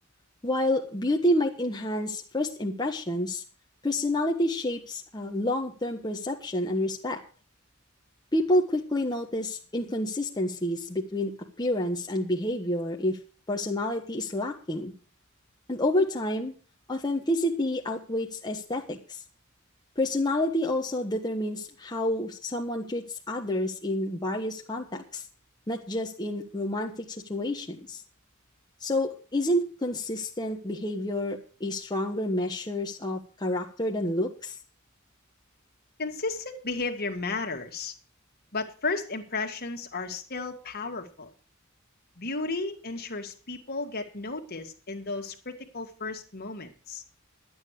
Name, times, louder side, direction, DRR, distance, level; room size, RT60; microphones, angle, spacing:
voice 1, 0.4-3.4 3.8-7.2 8.3-11.3 11.6-13.2 13.5-14.9 15.7-16.5 16.9-19.2 20.0-25.2 25.7-26.9 27.3-28.0 28.8-34.6, left 1 dB, 20° left, 0 dB, 1.2 m, -29 dB
voice 2, 36.0-37.9 38.5-41.3 42.2-47.0, left 3 dB, 50° left, 4 dB, 1.9 m, -34 dB
12.0 x 8.9 x 6.5 m, 0.38 s
head